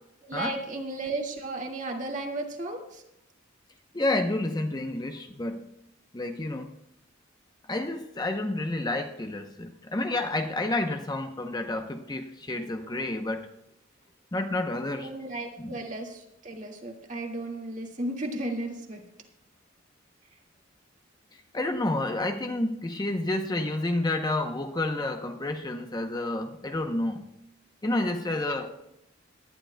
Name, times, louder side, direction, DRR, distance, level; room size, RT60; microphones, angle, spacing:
voice 1, 0.2-3.0 15.0-19.0 28.5-28.8, right 2 dB, 40° right, 1 dB, 1.9 m, -34 dB
voice 2, 3.9-5.7 6.1-6.7 7.7-13.4 14.3-15.1 15.6-15.8 21.5-27.3 27.8-28.7, left 2 dB, 20° left, 6 dB, 0.7 m, -30 dB
19.0 x 11.5 x 2.2 m, 0.82 s
head